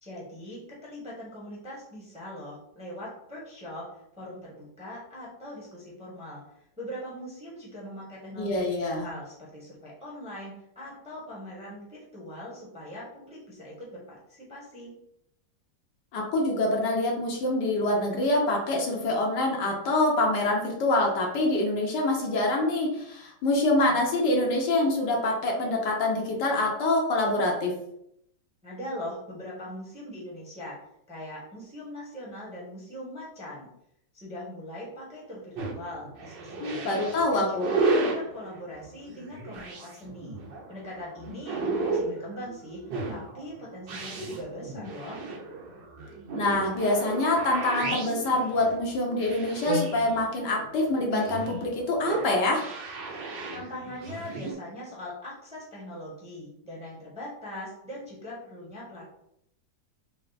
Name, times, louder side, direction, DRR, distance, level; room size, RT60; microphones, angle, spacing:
voice 1, 0.0-3.9 4.2-6.4 6.8-8.7 9.0-14.9 28.6-30.8 31.1-33.7 34.1-37.0 37.3-40.4 40.7-45.2 53.5-59.0, left 1 dB, 5° right, -5 dB, 0.9 m, -41 dB
voice 2, 8.4-9.1 16.1-27.8 36.6-37.7 46.3-52.6, left 2 dB, 75° left, 0 dB, 1.4 m, -25 dB
sound 1, 35.5-54.5, right 3 dB, 85° right, 1.6 m, -33 dB
4.5 x 2.0 x 4.0 m, 0.75 s
omnidirectional pair, 1.9 m